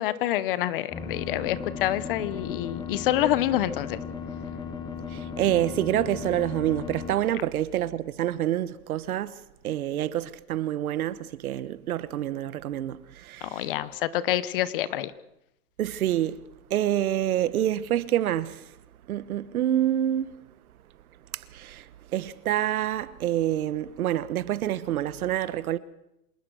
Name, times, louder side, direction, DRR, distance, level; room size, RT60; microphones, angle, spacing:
voice 1, 0.0-4.0 13.4-15.1, left 13 dB, 35° left, 0.9 m, -27 dB
sound 1, 0.9-7.1, left 6 dB, 10° left, 0.9 m, -36 dB
voice 2, 5.1-9.3 9.6-13.7 15.8-16.4 16.7-18.7 19.1-20.3 21.3-25.8, right 12 dB, 65° right, 1.3 m, -27 dB
27.0 x 19.0 x 6.3 m
hypercardioid pair, 160°, 47 cm